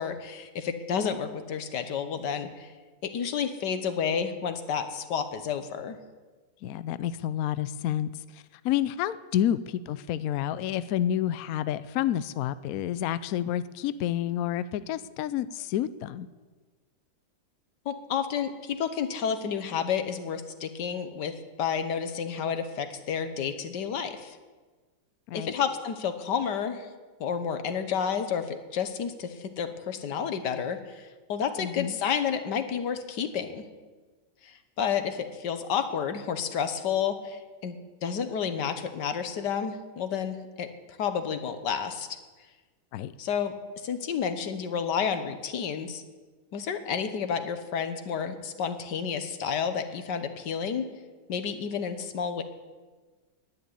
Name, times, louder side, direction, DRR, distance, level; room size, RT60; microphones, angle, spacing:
voice 1, 0.0-2.7 3.0-6.0 17.8-24.4 25.3-26.9 27.2-33.6 34.4-42.1 43.2-43.5 43.8-46.0 46.5-50.8 51.3-52.4, left 7 dB, 65° left, 9 dB, 1.6 m, -30 dB
voice 2, 6.6-16.3 25.3-25.5 31.6-32.0 42.9-43.1, left 11 dB, 85° left, 15 dB, 0.7 m, -29 dB
11.0 x 9.3 x 9.7 m, 1.3 s
omnidirectional pair, 2.1 m